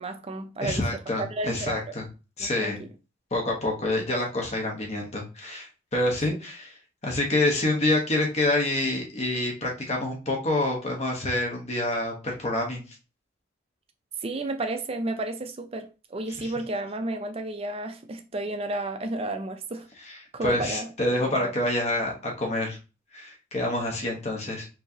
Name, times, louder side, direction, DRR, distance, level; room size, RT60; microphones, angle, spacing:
voice 1, 0.0-0.8 1.2-1.9 2.4-2.9 6.3-6.4 14.2-19.9 20.3-21.5, right 2 dB, 30° right, 0.5 m, -32 dB
voice 2, 0.6-2.1 2.4-2.8 3.3-6.8 7.0-12.8 16.4-16.5 20.1-22.8 23.1-24.7, left 1 dB, 35° left, 1.0 m, -27 dB
4.5 x 2.8 x 2.8 m
head